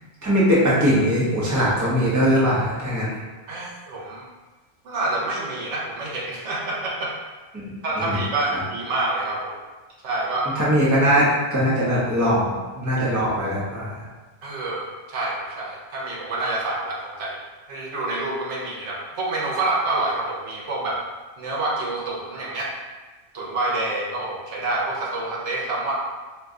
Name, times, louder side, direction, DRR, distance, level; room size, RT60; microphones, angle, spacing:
voice 1, 0.2-3.2 7.5-8.2 8.5-8.6 10.5-14.1, equal, 20° right, -7 dB, 0.7 m, -21 dB
voice 2, 3.5-4.2 4.8-7.1 7.8-9.5 10.0-10.5 14.4-17.4 17.7-21.0 21.4-22.7 23.3-26.0, right 2 dB, 85° right, -4 dB, 1.0 m, -27 dB
2.6 x 2.2 x 3.6 m, 1.3 s
omnidirectional pair, 1.2 m